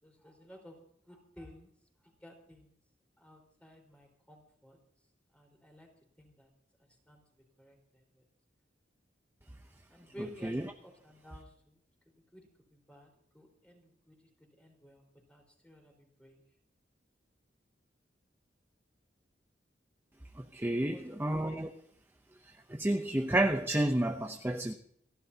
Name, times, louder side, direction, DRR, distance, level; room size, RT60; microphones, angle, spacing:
voice 1, 0.0-0.8 1.1-1.7 2.2-2.7 3.2-4.8 5.3-5.9 6.2-6.5 7.1-7.2 7.6-8.2 9.9-11.8 12.3-13.1 13.3-14.1 14.6-15.0 15.3-16.4 20.8-21.8, equal, 5° left, 1 dB, 4.5 m, -54 dB
voice 2, 20.4-21.7 22.7-24.7, right 1 dB, 15° right, 5 dB, 0.7 m, -30 dB
28.5 x 11.5 x 2.8 m, 0.68 s
head